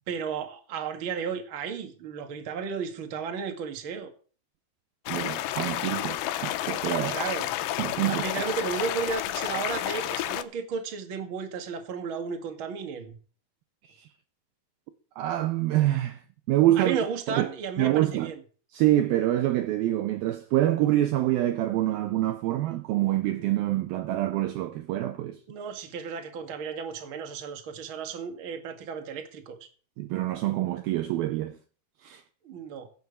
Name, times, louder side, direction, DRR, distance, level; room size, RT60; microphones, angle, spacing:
voice 1, 0.1-4.1 7.1-7.5 8.1-13.2 16.8-18.4 25.5-29.6 32.4-32.9, right 6 dB, 45° right, 1.8 m, -33 dB
sound 1, 5.1-10.4, left 14 dB, 85° left, 3.0 m, -31 dB
voice 2, 5.1-7.2 7.8-8.5 13.9-14.1 15.2-17.0 17.3-17.5 17.8-18.3 18.7-25.4 30.0-31.6 32.0-32.2, right 14 dB, 75° right, 2.3 m, -26 dB
16.5 x 6.2 x 7.0 m
omnidirectional pair, 5.0 m